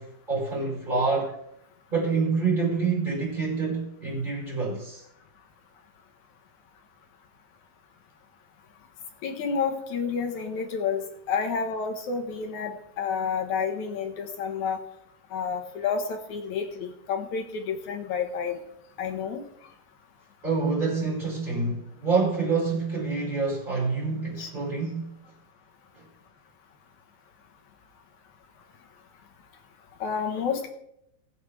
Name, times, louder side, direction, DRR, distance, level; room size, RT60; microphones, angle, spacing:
voice 1, 0.0-1.3 1.9-5.0 20.4-25.1, right 4 dB, 10° right, 4.9 m, -27 dB
voice 2, 9.2-14.8 15.3-18.6 19.0-19.4 24.4-24.5 30.0-30.7, left 6 dB, 65° left, 2.1 m, -30 dB
21.0 x 7.8 x 3.3 m
omnidirectional pair, 4.7 m